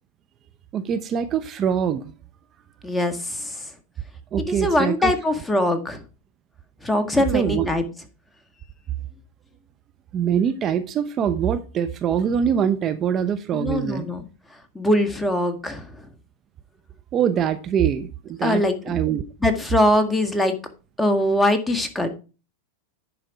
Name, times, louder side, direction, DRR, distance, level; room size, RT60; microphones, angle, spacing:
voice 1, 0.7-2.0 4.3-5.1 7.3-7.7 10.1-14.1 17.1-19.2, right 8 dB, 35° right, 0.9 m, -23 dB
voice 2, 2.8-3.6 4.5-6.0 6.8-7.8 13.5-14.2 14.7-15.9 18.4-19.0 19.4-20.6 21.0-22.1, left 1 dB, 10° left, 1.6 m, -22 dB
10.5 x 5.1 x 4.8 m
hypercardioid pair, 100°, 0 cm